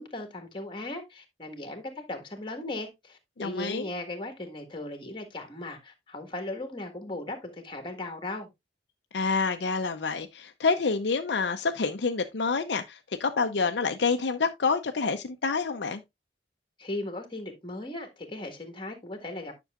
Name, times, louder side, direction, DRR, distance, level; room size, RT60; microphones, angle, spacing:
voice 1, 0.0-8.5 16.8-19.6, left 2 dB, 25° left, 1.6 m, -37 dB
voice 2, 3.4-3.9 9.1-16.0, left 4 dB, 70° left, 0.6 m, -28 dB
9.9 x 6.1 x 2.4 m
head